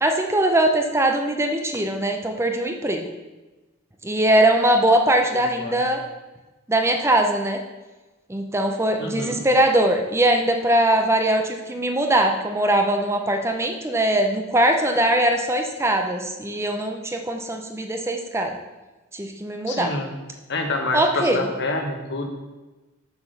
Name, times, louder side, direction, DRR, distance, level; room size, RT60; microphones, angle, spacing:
voice 1, 0.0-3.1 4.0-6.0 6.7-7.6 8.3-18.5 19.1-19.9 20.9-21.4, right 1 dB, 15° right, 4 dB, 0.6 m, -21 dB
voice 2, 5.3-5.8 9.0-9.4 19.7-20.1 20.5-22.3, left 2 dB, 55° left, 3 dB, 1.4 m, -27 dB
7.0 x 6.1 x 6.9 m, 1.1 s
head